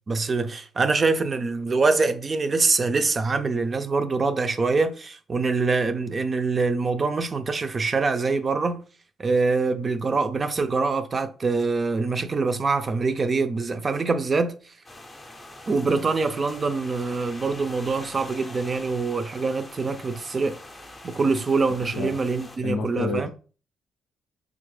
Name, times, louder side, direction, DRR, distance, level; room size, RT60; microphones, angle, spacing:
voice 1, 0.1-8.8 9.2-14.7 15.7-20.6 21.0-23.3, right 4 dB, 35° right, 0.4 m, -24 dB
sound 1, 14.8-22.6, left 1 dB, 20° left, 0.5 m, -43 dB
voice 2, 22.6-23.3, left 4 dB, 85° left, 0.3 m, -29 dB
3.4 x 2.0 x 3.2 m
cardioid pair, 90°, 0 cm